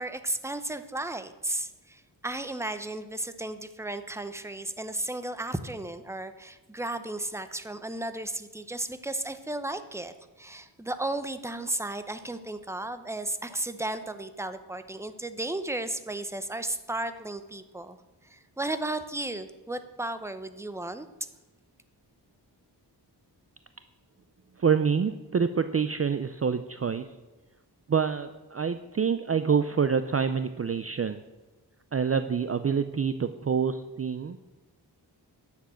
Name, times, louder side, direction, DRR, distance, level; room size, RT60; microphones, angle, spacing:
voice 1, 0.0-10.1 10.4-18.0 18.3-21.1, right 2 dB, 5° right, 10 dB, 0.8 m, -34 dB
voice 2, 24.6-27.1 27.9-31.2 31.9-34.4, right 6 dB, 35° right, 11 dB, 0.5 m, -27 dB
10.5 x 7.3 x 7.7 m, 1.1 s
wide cardioid pair, 100°, 41 cm